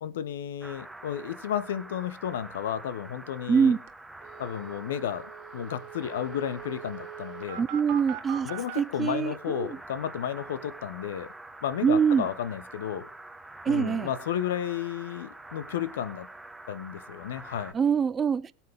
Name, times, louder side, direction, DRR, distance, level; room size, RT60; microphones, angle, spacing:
voice 1, 0.0-3.7 4.4-7.6 8.4-11.3 11.6-13.1 13.7-16.3 16.7-17.7, left 10 dB, 70° left, 1.0 m, -33 dB
sound 1, 0.6-17.7, right 2 dB, 5° right, 1.0 m, -46 dB
voice 2, 3.5-3.8 7.6-8.5 8.8-9.8 11.8-12.3 13.6-14.1 17.7-18.5, right 6 dB, 25° right, 0.5 m, -24 dB
sound 2, 3.5-3.6 3.9-4.0 4.2-8.8, right 11 dB, 50° right, 1.2 m, -42 dB
22.0 x 7.3 x 3.6 m
figure-of-eight pair, 80°, 0 cm